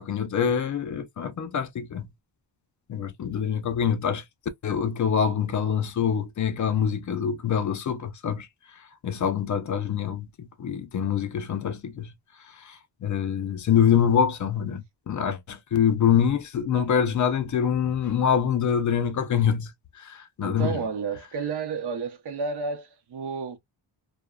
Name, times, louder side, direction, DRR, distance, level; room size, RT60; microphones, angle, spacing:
voice 1, 0.0-2.1 2.9-4.2 4.6-12.1 12.4-20.8, left 8 dB, 45° left, 0.5 m, -25 dB
voice 2, 20.4-23.6, right 5 dB, 60° right, 0.7 m, -31 dB
2.8 x 2.1 x 2.3 m
wide cardioid pair, 155°, 44 cm